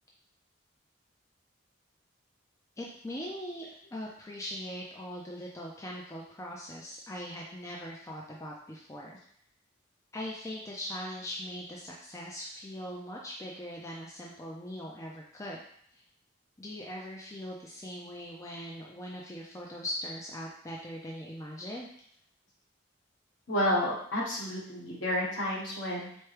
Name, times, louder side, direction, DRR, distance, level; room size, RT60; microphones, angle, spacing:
voice 1, 2.8-9.2 10.1-15.6 15.9-16.0 16.6-21.9, equal, 15° left, -3 dB, 0.4 m, -41 dB
voice 2, 23.5-26.2, left 1 dB, 65° left, -5 dB, 1.3 m, -30 dB
4.4 x 2.2 x 3.2 m, 0.64 s
head